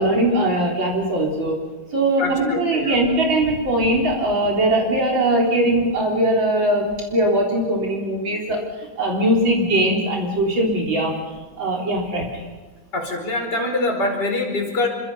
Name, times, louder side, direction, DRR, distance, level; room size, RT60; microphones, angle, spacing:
voice 1, 0.0-1.6 1.9-11.1 11.6-12.5, right 1 dB, 80° right, -2 dB, 4.7 m, -20 dB
voice 2, 2.2-3.0 12.9-14.9, left 2 dB, 60° left, 2 dB, 5.5 m, -24 dB
28.0 x 25.0 x 5.7 m, 1.3 s
omnidirectional pair, 2.1 m